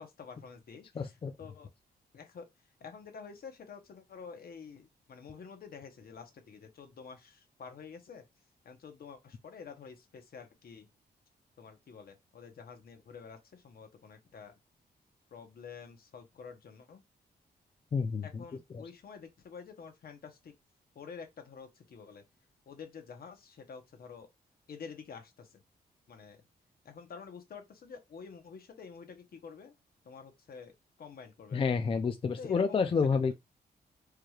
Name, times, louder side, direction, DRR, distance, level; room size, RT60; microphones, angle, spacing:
voice 1, 0.0-1.7 2.1-2.4 2.8-8.2 8.6-10.9 11.6-14.5 15.3-17.0 18.2-20.5 20.9-22.2 22.7-24.3 24.7-25.6 26.1-26.4 26.8-29.8 30.0-30.7 31.0-31.6 32.4-32.9, left 6 dB, 60° left, 1.0 m, -49 dB
voice 2, 1.0-1.3 17.9-18.4 31.5-33.3, left 5 dB, 30° left, 0.4 m, -29 dB
4.7 x 3.1 x 2.4 m
cardioid pair, 95°, 17 cm